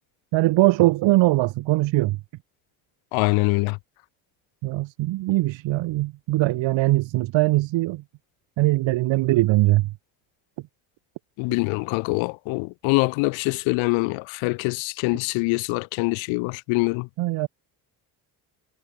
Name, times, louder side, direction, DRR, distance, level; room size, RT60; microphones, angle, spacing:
voice 1, 0.3-2.2 4.6-8.0 8.6-9.9 17.2-17.5, right 18 dB, 70° right, 1.5 m, -21 dB
voice 2, 3.1-3.8 11.4-17.1, left 28 dB, 80° left, 1.0 m, -24 dB
supercardioid pair, 65°, 46 cm